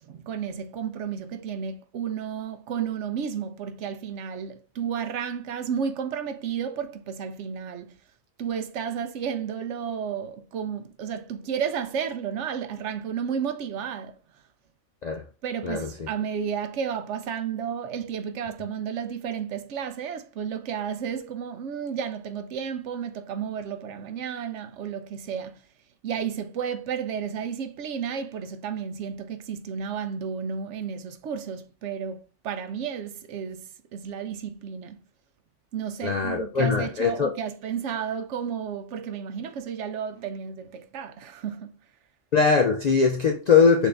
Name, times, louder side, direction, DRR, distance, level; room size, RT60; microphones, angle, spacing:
voice 1, 0.0-8.0 8.4-14.4 15.4-25.7 26.0-35.0 35.7-41.8, right 7 dB, 75° right, 0.9 m, -32 dB
voice 2, 15.6-16.1 36.0-37.4 42.3-43.9, left 5 dB, 65° left, 0.4 m, -21 dB
6.1 x 2.6 x 3.3 m
omnidirectional pair, 1.3 m